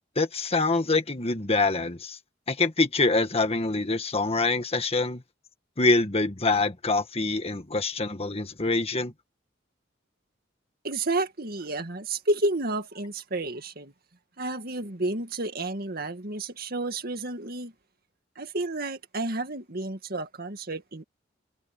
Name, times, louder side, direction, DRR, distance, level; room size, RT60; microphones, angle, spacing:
voice 1, 0.1-2.2 2.5-5.2 5.8-9.1, left 3 dB, 35° left, 1.7 m, -25 dB
voice 2, 10.8-13.9 14.4-17.7 18.4-21.0, right 2 dB, 55° right, 2.1 m, -31 dB
head